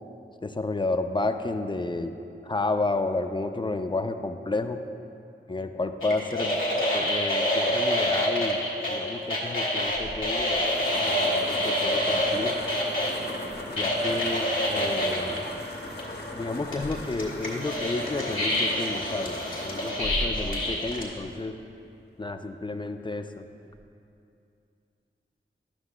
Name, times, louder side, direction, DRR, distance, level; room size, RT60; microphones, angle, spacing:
voice 1, 0.4-2.1 2.4-4.8 5.5-6.6 6.9-12.6 13.7-15.5 16.3-21.6 22.2-23.4, left 2 dB, 25° left, 8 dB, 0.3 m, -31 dB
sound 1, 6.0-13.1 13.8-15.4 16.0-16.1 16.7-21.0, left 1 dB, 70° left, 1.4 m, -27 dB
sound 2, 9.9-21.7, left 1 dB, 50° left, 0.8 m, -37 dB
11.5 x 6.0 x 2.2 m, 2.6 s
wide cardioid pair, 50°, 21 cm